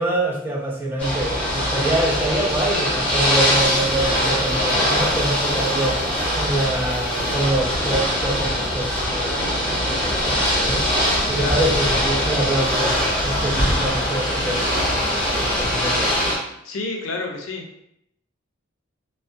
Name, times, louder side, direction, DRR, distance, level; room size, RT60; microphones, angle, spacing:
voice 1, 0.0-10.9 11.3-13.0 13.2-16.2, right 1 dB, 10° right, -3 dB, 0.4 m, -26 dB
Ocean / Boat Water vehicle, 1.0-16.4, equal, 5° left, 0.8 m, -22 dB
voice 2, 11.4-11.7 16.6-17.7, left 3 dB, 80° left, 3 dB, 0.4 m, -28 dB
2.4 x 2.1 x 2.5 m, 0.75 s
head